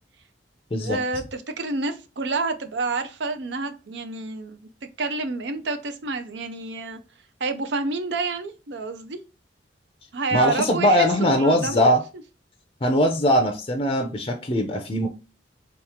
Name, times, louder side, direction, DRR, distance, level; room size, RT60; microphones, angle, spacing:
voice 1, 0.7-4.7 5.0-7.0 7.4-9.2 10.1-11.9, right 3 dB, 75° right, 0.6 m, -29 dB
voice 2, 10.3-12.0 12.8-15.1, equal, 30° left, 0.5 m, -21 dB
3.3 x 3.0 x 3.5 m
head